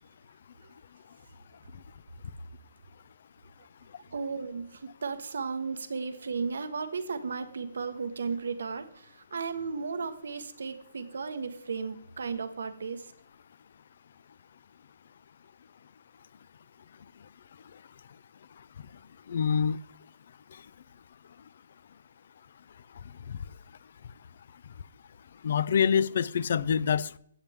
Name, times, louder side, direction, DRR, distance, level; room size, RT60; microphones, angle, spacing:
voice 1, 4.1-13.1, right 5 dB, 85° right, 1.4 m, -35 dB
voice 2, 19.3-19.8 25.4-27.1, left 7 dB, 50° left, 0.5 m, -25 dB
15.0 x 9.1 x 3.6 m
hypercardioid pair, 175°, 0 cm